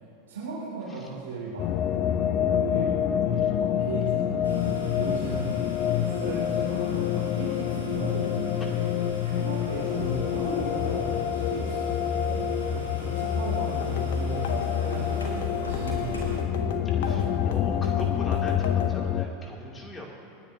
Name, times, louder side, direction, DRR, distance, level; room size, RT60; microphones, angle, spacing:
voice 1, 0.3-1.7 2.1-8.9 9.2-11.8 12.1-16.8, right 3 dB, 80° right, -6 dB, 2.7 m, -36 dB
sound 1, 1.6-19.3, left 9 dB, 45° left, 0.7 m, -27 dB
sound 2, 4.4-16.4, left 1 dB, 85° left, 2.4 m, -43 dB
sound 3, 13.8-19.0, left 5 dB, 65° left, 1.2 m, -37 dB
voice 2, 17.0-20.1, left 1 dB, 20° left, -2 dB, 2.6 m, -40 dB
30.0 x 10.0 x 2.7 m, 2.5 s
figure-of-eight pair, 85°, 0 cm